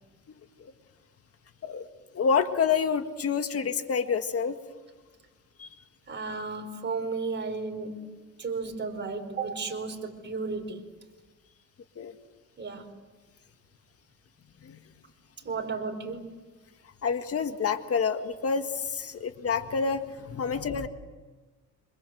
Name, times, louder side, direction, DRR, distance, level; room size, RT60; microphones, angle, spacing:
voice 1, 2.1-4.6 5.6-5.7 12.0-12.1 14.6-14.8 17.0-20.9, left 6 dB, 50° left, 8 dB, 1.8 m, -28 dB
voice 2, 6.1-8.1 8.4-10.8 12.6-12.9 15.4-16.4 19.1-19.2, right 4 dB, 35° right, 4 dB, 5.3 m, -34 dB
27.0 x 26.5 x 7.9 m, 1.3 s
cardioid pair, 90°, 30 cm